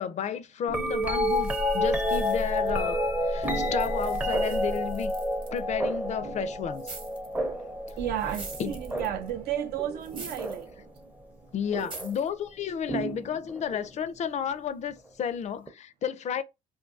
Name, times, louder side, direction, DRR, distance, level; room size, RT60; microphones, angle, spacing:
voice 1, 0.0-5.1 5.5-6.9 8.6-8.8 11.5-16.4, left 8 dB, 45° left, 0.4 m, -32 dB
sound 1, 0.7-10.8 11.7-12.1 12.9-13.9 15.7-15.8, equal, 10° right, 0.5 m, -30 dB
sound 2, 1.1-3.1 3.4-5.6 6.7-7.4 7.9-9.3 10.0-10.6 11.0-11.1 11.8-12.3, right 3 dB, 30° right, 0.9 m, -46 dB
voice 2, 8.0-10.7, right 11 dB, 70° right, 0.6 m, -32 dB
2.7 x 2.3 x 2.5 m
cardioid pair, 110°, 17 cm